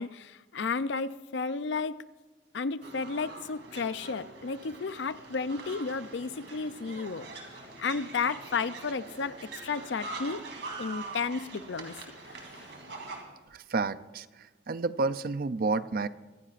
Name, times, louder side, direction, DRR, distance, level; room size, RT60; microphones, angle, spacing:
voice 1, 0.0-2.1 2.5-7.3 7.8-10.4 10.8-12.7, left 4 dB, 65° left, 14 dB, 0.5 m, -33 dB
sound 1, 2.8-13.2, right 3 dB, 65° right, 2.7 m, -44 dB
voice 2, 13.5-14.3 14.7-16.1, right 3 dB, 50° right, 14 dB, 0.4 m, -30 dB
23.5 x 16.0 x 2.5 m, 1.2 s
head